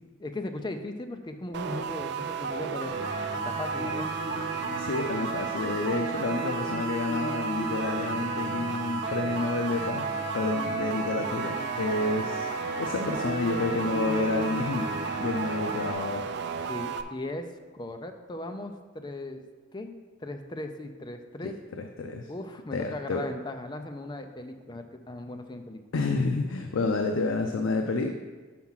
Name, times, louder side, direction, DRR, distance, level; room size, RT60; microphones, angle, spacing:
voice 1, 0.2-3.0 3.4-4.1 16.7-19.4 19.7-20.0 20.2-21.5 22.3-25.8, left 2 dB, 20° left, 6 dB, 0.4 m, -37 dB
sound 1, 1.5-17.0, right 6 dB, 60° right, 0.3 m, -33 dB
sound 2, 2.9-15.9, equal, 25° right, 1.9 m, -36 dB
voice 2, 4.8-10.1 10.3-12.5 12.8-14.9 15.2-16.3 21.4-22.3 22.7-23.3 25.9-28.1, left 3 dB, 90° left, 4 dB, 0.5 m, -29 dB
5.9 x 4.7 x 5.6 m, 1.3 s
head